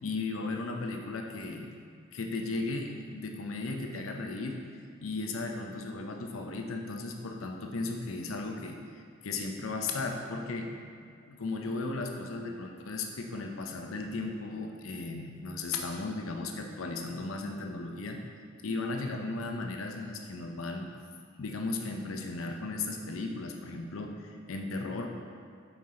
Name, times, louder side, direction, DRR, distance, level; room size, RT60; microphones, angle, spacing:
voice 1, 0.0-1.7 2.1-4.6 5.0-18.2 18.6-20.9 21.4-25.1, left 3 dB, 85° left, 3 dB, 0.6 m, -36 dB
5.6 x 4.5 x 3.8 m, 2.3 s
head